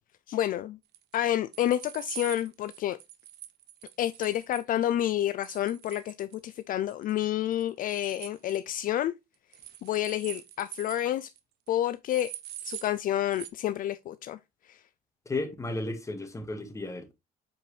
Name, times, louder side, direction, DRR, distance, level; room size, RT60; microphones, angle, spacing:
voice 1, 0.3-0.8 1.1-3.0 4.0-9.1 9.8-11.3 11.7-12.3 12.6-14.4 14.7-14.8, left 12 dB, 55° left, 0.4 m, -29 dB
sound 1, 0.9-4.6 5.4-6.6 6.9-7.2 7.5-8.6 9.5-11.1 11.4-11.5 11.7-11.8 12.1-12.9 13.3-13.5, right 13 dB, 75° right, 0.9 m, -44 dB
voice 2, 15.2-17.1, left 2 dB, 20° left, 1.7 m, -34 dB
7.8 x 4.6 x 3.2 m
cardioid pair, 110°, 17 cm